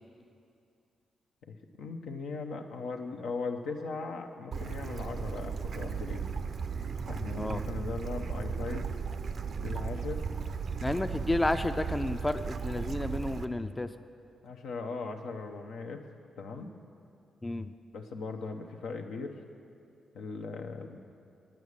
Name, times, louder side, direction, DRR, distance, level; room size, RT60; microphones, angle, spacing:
voice 1, 1.4-6.3 7.1-8.9 9.6-10.3 14.4-16.0 16.4-16.7 17.9-19.4 20.1-21.0, left 4 dB, 80° left, 4 dB, 0.7 m, -38 dB
Bird / Stream, 4.5-13.4, right 5 dB, 60° right, 0.4 m, -35 dB
voice 2, 10.8-13.9 17.4-17.7, left 2 dB, 20° left, 9 dB, 0.4 m, -31 dB
9.2 x 8.6 x 6.4 m, 2.4 s
supercardioid pair, 50°, 0 cm